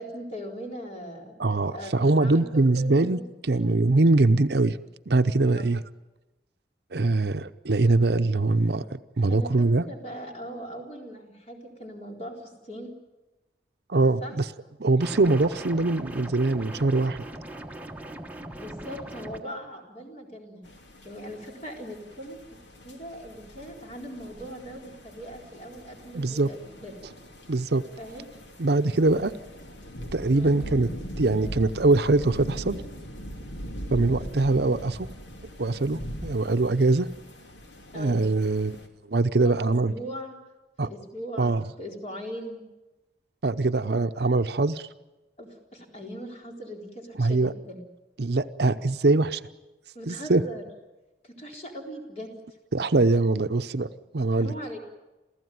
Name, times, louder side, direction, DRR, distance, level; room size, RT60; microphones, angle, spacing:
voice 1, 0.0-1.4 1.7-3.2 3.5-3.7 5.4-5.7 9.3-12.9 14.2-14.3 18.5-20.6 21.0-22.4 22.8-26.9 28.0-28.3 30.3-30.6 37.9-38.3 39.4-40.3 40.8-42.6 45.4-47.8 49.9-50.6 51.2-52.3 54.3-54.8, equal, 35° left, 1 dB, 4.2 m, -40 dB
voice 2, 1.4-4.8 5.1-5.8 6.9-9.8 13.9-14.4 14.8-17.2 26.1-26.5 27.5-27.8 28.6-29.3 30.1-30.9 31.2-32.8 33.9-35.1 35.6-37.1 37.9-38.8 39.1-39.9 40.8-40.9 41.4-41.6 43.4-44.9 47.2-47.5 48.2-49.4 50.1-50.4 52.7-54.5, right 2 dB, 60° right, 11 dB, 0.7 m, -23 dB
sound 1, 15.0-19.4, right 1 dB, 10° right, 1.1 m, -40 dB
sound 2, 20.6-38.9, equal, 85° left, 2.6 m, -41 dB
28.0 x 15.5 x 9.4 m, 1.1 s
head